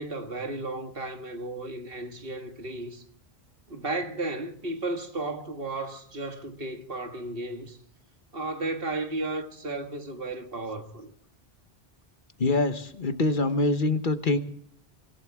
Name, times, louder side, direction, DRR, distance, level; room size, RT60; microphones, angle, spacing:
voice 1, 0.0-3.0 3.7-7.8 8.3-11.1, right 2 dB, 60° right, 2.0 m, -34 dB
voice 2, 12.4-14.4, left 2 dB, 50° left, 1.2 m, -24 dB
25.5 x 15.5 x 3.6 m
omnidirectional pair, 1.1 m